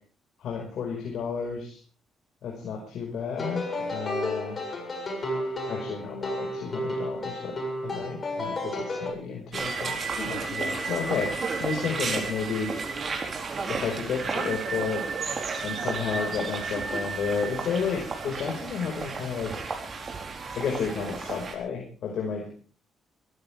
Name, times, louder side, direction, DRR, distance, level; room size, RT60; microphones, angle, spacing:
voice 1, 0.4-1.8 2.4-4.6 5.7-7.6 7.8-12.7 13.7-15.0 15.6-19.5 20.5-22.5, left 6 dB, 70° left, 0 dB, 5.3 m, -32 dB
sound 1, 3.4-9.1, left 1 dB, 35° left, 7.3 m, -32 dB
sound 2, 9.5-21.6, right 4 dB, 45° right, 4.4 m, -32 dB
23.5 x 14.5 x 3.6 m, 0.42 s
cardioid pair, 90°, 0 cm